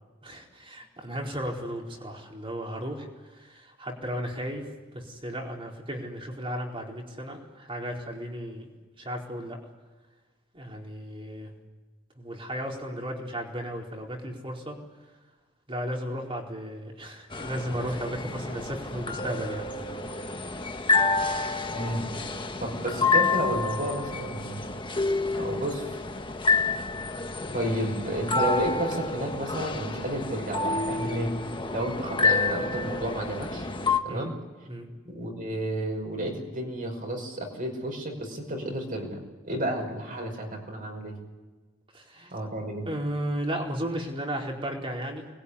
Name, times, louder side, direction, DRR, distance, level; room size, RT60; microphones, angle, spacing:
voice 1, 0.2-3.1 3.3-4.7 4.9-8.7 9.0-9.6 10.5-11.5 12.2-14.8 15.7-19.6 20.2-20.3 34.1-34.3 34.7-34.9 41.9-42.3 42.8-45.4, equal, 25° right, 0 dB, 4.3 m, -34 dB
sound 1, 17.3-34.0, left 3 dB, 25° left, 1.4 m, -28 dB
voice 2, 21.7-22.2 22.6-24.6 25.4-26.0 27.5-31.3 31.7-33.7 34.0-34.3 35.1-39.2 39.4-41.1 42.3-42.9, right 1 dB, 45° right, 2 dB, 5.5 m, -31 dB
25.5 x 21.0 x 9.9 m, 1.3 s
head